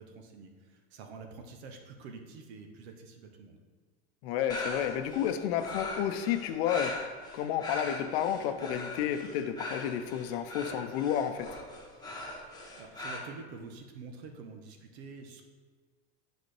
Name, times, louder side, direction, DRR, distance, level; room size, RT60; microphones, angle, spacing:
voice 1, 0.0-3.6 12.8-15.4, right 4 dB, 65° right, 4 dB, 1.1 m, -47 dB
voice 2, 4.2-6.9 7.3-11.5, left 9 dB, 60° left, 8 dB, 0.7 m, -31 dB
sound 1, 4.5-13.2, left 2 dB, 10° left, 1.2 m, -40 dB
9.2 x 4.1 x 3.3 m, 1.5 s
hypercardioid pair, 100°, 34 cm